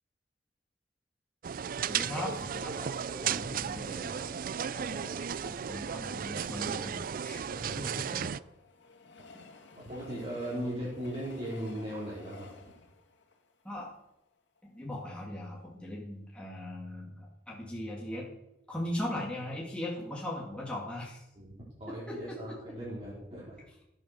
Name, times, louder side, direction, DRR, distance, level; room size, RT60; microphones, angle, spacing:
sound 1, 1.4-8.4, right 8 dB, 50° right, 0.4 m, -35 dB
voice 1, 1.9-2.7 3.7-4.4 4.7-7.4 7.8-8.2 9.3-9.5 13.6-13.9 14.6-18.3 18.7-21.2 21.9-22.6, left 1 dB, 5° left, -4 dB, 2.3 m, -39 dB
voice 2, 2.5-3.6 7.5-8.4 9.7-12.5 18.7-18.9 21.3-23.6, right 1 dB, 35° right, -7 dB, 4.6 m, -39 dB
Train, 7.5-14.6 15.2-15.3 15.5-15.6, left 3 dB, 70° left, 2.5 m, -54 dB
16.5 x 9.6 x 6.8 m, 0.88 s
head